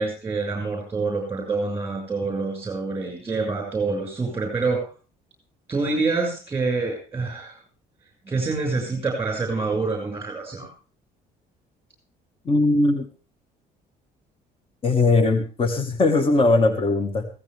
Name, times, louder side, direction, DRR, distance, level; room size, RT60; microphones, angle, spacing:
voice 1, 0.0-4.9 5.7-7.6 8.2-10.7, right 3 dB, 15° right, 1 dB, 6.1 m, -26 dB
voice 2, 12.5-13.1 14.8-17.3, left 2 dB, 35° left, 7 dB, 1.7 m, -20 dB
16.0 x 15.0 x 3.5 m, 0.35 s
cardioid pair, 110°, 17 cm